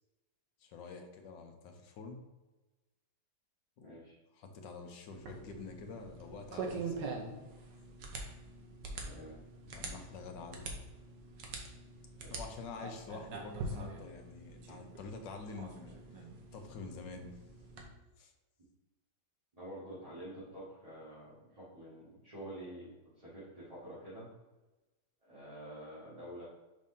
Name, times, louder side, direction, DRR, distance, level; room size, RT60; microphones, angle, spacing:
voice 1, 0.6-2.2 3.8-4.0 4.3-7.1 9.6-10.7 12.3-16.0 16.5-17.4 18.2-18.3, left 4 dB, 70° left, 4 dB, 1.5 m, -47 dB
voice 2, 3.8-4.2 9.0-9.4 12.2-12.3 19.5-24.3 25.2-26.4, right 1 dB, 20° right, -10 dB, 2.0 m, -48 dB
sound 1, 5.1-17.9, right 3 dB, 70° right, 1.5 m, -44 dB
6.4 x 5.3 x 2.8 m, 1.1 s
omnidirectional pair, 2.1 m